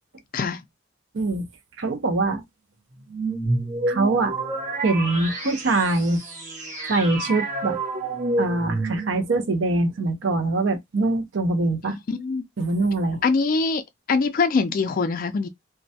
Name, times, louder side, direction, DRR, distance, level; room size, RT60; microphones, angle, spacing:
voice 1, 1.1-1.5 1.8-2.4 3.9-4.3 4.8-6.2 6.9-7.8 8.4-12.0 12.6-13.2, right 2 dB, 65° right, 0.5 m, -23 dB
sound 1, 3.1-9.4, right 2 dB, 35° right, 0.9 m, -29 dB
voice 2, 11.9-12.5 13.2-13.8 14.1-15.5, left 4 dB, 40° left, 0.3 m, -23 dB
2.2 x 2.1 x 2.7 m
head